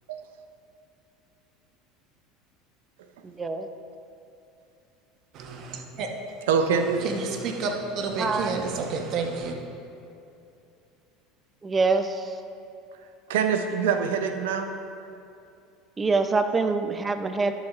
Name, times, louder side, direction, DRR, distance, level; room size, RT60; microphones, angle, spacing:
voice 1, 3.2-3.7 8.2-8.6 11.6-12.4 16.0-17.5, right 3 dB, 25° right, 8 dB, 0.6 m, -25 dB
voice 2, 5.3-6.1 6.7-9.6, right 4 dB, 55° right, 3 dB, 1.1 m, -30 dB
voice 3, 6.5-7.0 13.3-14.7, right 6 dB, 80° right, 7 dB, 0.5 m, -24 dB
11.5 x 7.7 x 2.5 m, 2.7 s
hypercardioid pair, 85°, 0 cm